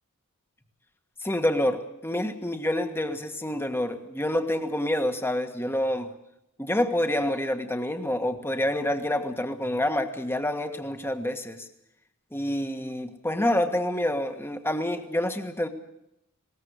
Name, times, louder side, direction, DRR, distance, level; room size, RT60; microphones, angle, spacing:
voice 1, 1.2-6.1 6.6-11.6 12.3-15.7, left 1 dB, 10° left, 7 dB, 1.6 m, -27 dB
20.5 x 19.0 x 8.2 m, 0.81 s
head